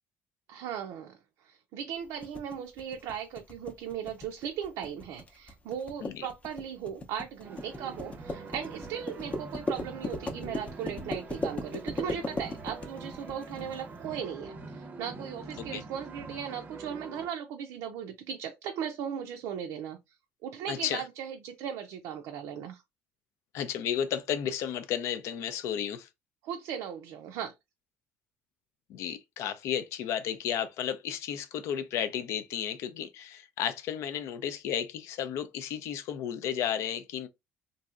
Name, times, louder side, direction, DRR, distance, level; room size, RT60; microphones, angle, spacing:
voice 1, 0.5-1.2 1.4-20.0 20.4-22.8 26.4-27.5, right 8 dB, 85° right, 0.4 m, -37 dB
sound 1, 2.2-13.8, left 2 dB, 25° left, 0.6 m, -37 dB
sound 2, 7.4-17.3, right 3 dB, 35° right, 0.6 m, -45 dB
voice 2, 20.7-21.0 23.5-26.1 28.9-37.3, left 9 dB, 75° left, 0.5 m, -33 dB
3.0 x 2.6 x 2.4 m
cardioid pair, 120°, 5 cm